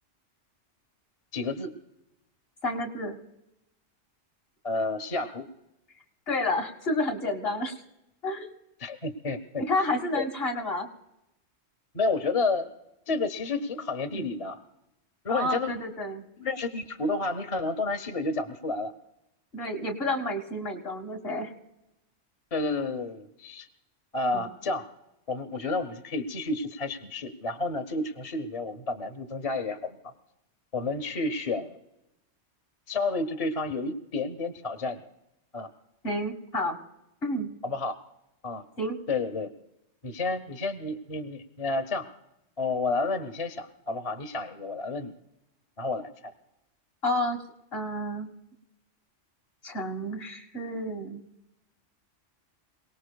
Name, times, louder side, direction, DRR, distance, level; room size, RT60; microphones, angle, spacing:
voice 1, 1.3-1.7 4.6-5.5 8.8-9.6 10.1-10.3 11.9-12.7 13.1-14.6 15.2-15.8 16.4-18.9 22.5-23.7 24.1-24.9 25.3-30.1 30.7-31.8 32.9-35.0 35.5-35.7 37.6-38.0 38.4-38.6 39.1-39.5 40.0-42.1 42.6-45.1 45.8-46.3, left 3 dB, 35° left, 6 dB, 0.8 m, -30 dB
voice 2, 2.6-3.2 6.3-7.8 8.2-8.5 9.7-10.9 14.1-14.3 15.3-16.2 19.5-21.5 24.3-24.4 36.0-36.8 37.2-37.5 38.8-39.0 47.0-47.4 47.7-48.3 49.6-51.2, left 1 dB, 55° left, 2 dB, 1.9 m, -30 dB
27.5 x 18.5 x 2.3 m, 0.89 s
omnidirectional pair, 1.3 m